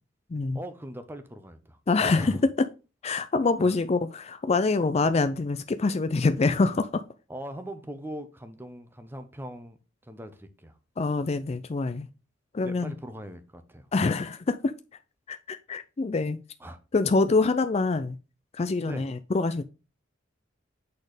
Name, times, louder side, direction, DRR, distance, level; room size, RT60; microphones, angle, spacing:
voice 1, 0.5-1.8 2.1-2.4 3.6-3.7 7.3-9.8 10.0-10.8 12.6-13.9 16.6-16.8 18.8-19.1, equal, 10° right, 0.9 m, -40 dB
voice 2, 1.9-2.7 3.0-7.0 11.0-12.1 12.5-12.9 13.9-14.7 15.3-16.4 16.9-18.2 18.5-19.6, left 3 dB, 30° left, 0.4 m, -25 dB
8.4 x 4.3 x 4.9 m
head